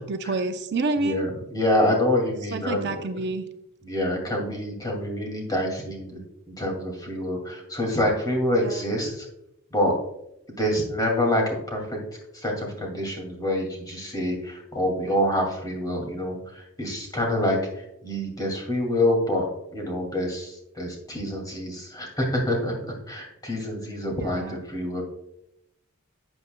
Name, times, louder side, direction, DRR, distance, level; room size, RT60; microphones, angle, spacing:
voice 1, 0.1-1.3 2.5-3.4 8.6-8.8 24.2-24.6, right 3 dB, 50° right, 7 dB, 0.6 m, -28 dB
voice 2, 1.0-2.9 3.8-6.2 6.5-9.3 9.7-9.9 10.6-12.0 12.3-19.5 19.7-22.7 23.1-25.0, left 1 dB, 20° left, 0 dB, 2.4 m, -26 dB
12.0 x 7.8 x 2.3 m, 0.80 s
head